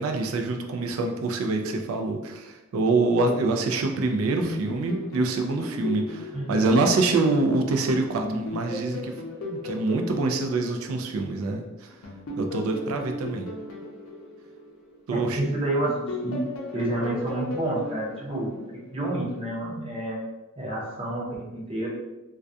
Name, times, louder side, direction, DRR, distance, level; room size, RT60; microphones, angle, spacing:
voice 1, 0.0-9.1 9.4-11.9 12.4-13.5 15.1-15.4, right 3 dB, 70° right, 4 dB, 0.3 m, -25 dB
sound 1, 4.4-7.8 8.2-11.5 12.0-15.4 15.8-19.1, left 1 dB, 85° left, 0.5 m, -37 dB
voice 2, 15.1-16.4 16.7-18.6 18.9-20.2 20.6-21.9, right 1 dB, 25° right, -4 dB, 0.6 m, -29 dB
2.3 x 2.2 x 2.6 m, 1.0 s
head